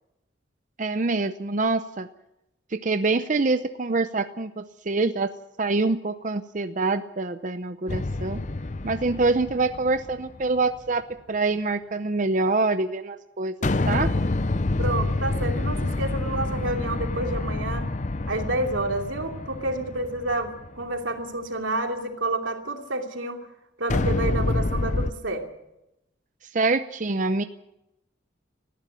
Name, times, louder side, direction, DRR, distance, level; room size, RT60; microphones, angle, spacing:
voice 1, 0.8-2.1 2.7-8.4 8.8-14.1 26.5-27.4, right 3 dB, 40° right, 10 dB, 0.7 m, -25 dB
sound 1, 7.9-10.4 13.6-20.8 23.9-25.1, left 2 dB, 40° left, 0.6 m, -27 dB
voice 2, 14.8-17.9 18.3-23.4 23.8-25.5, right 2 dB, 90° right, 4 dB, 2.8 m, -29 dB
19.0 x 15.0 x 9.1 m, 0.88 s
head